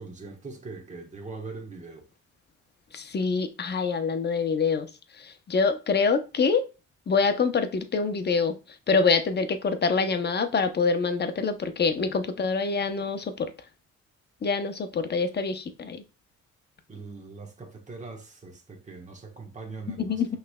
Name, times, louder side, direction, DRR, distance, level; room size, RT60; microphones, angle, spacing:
voice 1, 0.0-2.0 16.9-20.4, right 3 dB, 25° right, 1.2 m, -41 dB
voice 2, 2.9-4.9 5.5-6.6 7.1-8.6 8.9-13.5 14.4-16.0 19.9-20.4, left 4 dB, 35° left, 0.7 m, -25 dB
5.7 x 3.3 x 2.2 m
cardioid pair, 90°, 30 cm